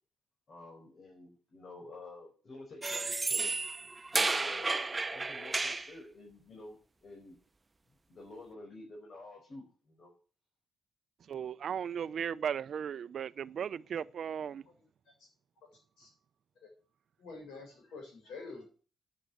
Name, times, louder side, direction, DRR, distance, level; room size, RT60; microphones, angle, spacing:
voice 1, 0.5-3.5 4.1-7.4 8.1-10.1, left 2 dB, 55° left, 5.4 m, -50 dB
sound 1, 2.8-5.9, right 3 dB, 30° right, 1.0 m, -32 dB
voice 2, 11.3-14.6, right 8 dB, 65° right, 0.6 m, -36 dB
voice 3, 17.2-18.6, left 3 dB, 80° left, 7.3 m, -47 dB
9.7 x 8.0 x 9.2 m
supercardioid pair, 55°, 0 cm